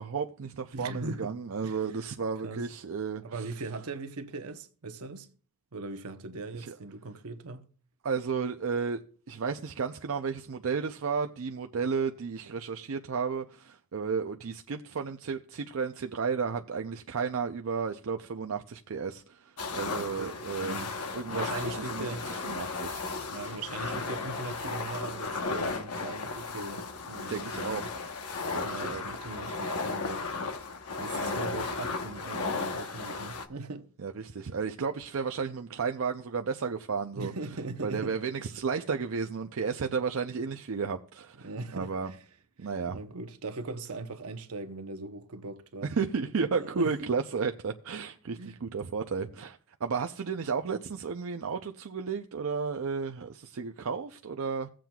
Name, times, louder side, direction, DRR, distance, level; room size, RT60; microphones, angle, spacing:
voice 1, 0.0-3.4 6.6-6.7 8.0-20.8 21.1-23.6 27.3-27.8 28.5-29.0 31.2-31.5 34.0-37.3 37.8-42.1 42.6-43.0 45.8-54.7, right 5 dB, 65° right, 0.5 m, -33 dB
voice 2, 0.7-1.4 1.6-1.8 2.4-2.6 3.2-5.3 5.7-7.7 19.8-21.0 21.3-22.3 23.2-27.9 28.6-30.3 31.0-33.9 37.1-38.2 41.4-42.2 42.6-45.9 46.5-47.1 48.4-48.6, right 3 dB, 80° right, 0.9 m, -40 dB
sound 1, 19.6-33.5, left 4 dB, 90° left, 1.0 m, -35 dB
16.5 x 7.5 x 2.3 m
head